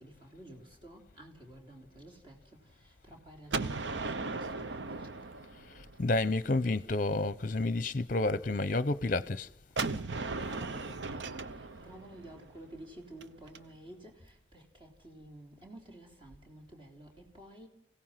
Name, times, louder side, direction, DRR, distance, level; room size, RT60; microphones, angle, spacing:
voice 1, 0.0-2.4 2.8-5.1 10.4-17.7, right 1 dB, 25° right, 3.6 m, -51 dB
Gunshot gunfire, 3.5-6.3 9.8-13.6, right 3 dB, 70° right, 0.8 m, -37 dB
voice 2, 6.0-9.5, left 2 dB, 45° left, 0.7 m, -30 dB
29.5 x 17.0 x 5.8 m
head